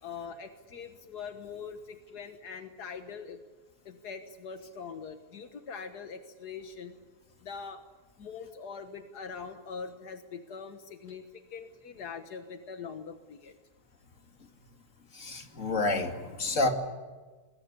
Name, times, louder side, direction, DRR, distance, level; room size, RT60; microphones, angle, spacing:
voice 1, 0.0-3.4 3.9-6.9 7.4-7.8 8.2-11.2 11.5-13.5, left 5 dB, 85° left, 7 dB, 1.9 m, -42 dB
voice 2, 15.1-16.7, left 2 dB, 50° left, 4 dB, 3.0 m, -29 dB
25.5 x 21.5 x 9.9 m, 1.3 s
omnidirectional pair, 1.7 m